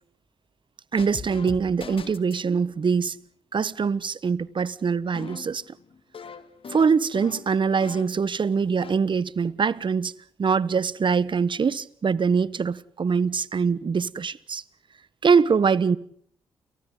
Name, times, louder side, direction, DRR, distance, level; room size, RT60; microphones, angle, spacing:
voice 1, 0.9-3.2 3.5-5.6 6.7-10.1 10.4-14.6 15.2-16.0, right 5 dB, 45° right, 1.2 m, -23 dB
sound 1, 1.0-2.5 5.1-8.3 8.6-8.9, left 6 dB, 55° left, 2.4 m, -40 dB
30.0 x 29.0 x 4.0 m
hypercardioid pair, 40°, 11 cm